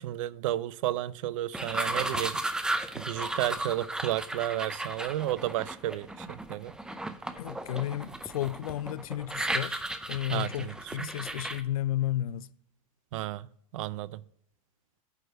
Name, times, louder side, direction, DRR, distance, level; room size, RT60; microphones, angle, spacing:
voice 1, 0.0-2.4 2.9-6.8 10.3-11.1 13.1-14.2, right 14 dB, 65° right, 0.4 m, -32 dB
sound 1, 1.5-11.6, right 1 dB, 5° right, 0.5 m, -35 dB
voice 2, 7.4-12.5, left 13 dB, 85° left, 0.4 m, -33 dB
9.3 x 3.2 x 6.3 m
hypercardioid pair, 120°, 18 cm